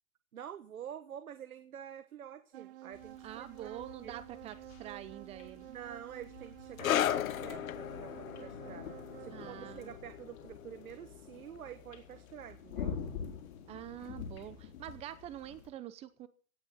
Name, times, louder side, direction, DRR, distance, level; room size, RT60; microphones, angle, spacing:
voice 1, 0.3-4.2 5.7-8.9 9.2-13.0, right 9 dB, 85° right, 11 dB, 1.3 m, -48 dB
sound 1, 2.5-10.0, right 14 dB, 40° right, 0.9 m, -51 dB
sound 2, 2.9-15.7, left 7 dB, 50° left, 3.9 m, -47 dB
voice 2, 3.2-5.7 9.3-9.9 13.7-16.3, right 12 dB, 15° right, 14 dB, 0.8 m, -46 dB
sound 3, 6.8-13.8 14.0-14.3 15.0-15.1, left 11 dB, 75° left, 0.9 m, -37 dB
17.0 x 6.2 x 9.4 m, 0.42 s
hypercardioid pair, 150°, 42 cm